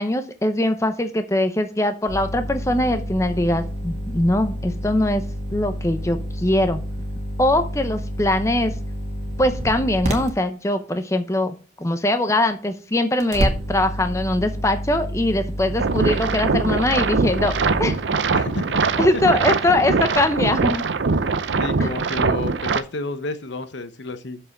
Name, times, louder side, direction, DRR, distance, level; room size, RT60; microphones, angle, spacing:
voice 1, 0.0-5.2 5.5-6.8 7.4-8.7 9.4-18.0 19.0-20.8, left 1 dB, 15° left, 8 dB, 0.7 m, -22 dB
sound 1, 2.1-10.3 13.2-17.9, equal, 40° right, 1.7 m, -29 dB
voice 2, 15.7-16.0 18.3-18.8 21.6-24.4, left 2 dB, 90° left, 10 dB, 0.9 m, -31 dB
sound 2, 15.8-22.8, right 4 dB, 85° right, 0.6 m, -22 dB
6.7 x 5.5 x 5.9 m, 0.36 s
head